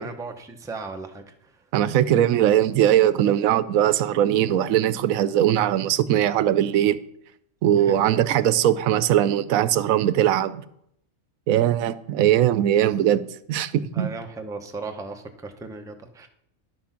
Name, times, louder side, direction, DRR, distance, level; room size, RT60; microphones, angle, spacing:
voice 1, 0.0-1.5 7.8-7.9 13.9-16.3, right 3 dB, 5° right, 5 dB, 0.6 m, -36 dB
voice 2, 1.7-7.0 7.6-10.6 11.5-14.1, right 11 dB, 85° right, 15 dB, 1.0 m, -20 dB
10.5 x 6.0 x 5.8 m, 0.73 s
omnidirectional pair, 1.4 m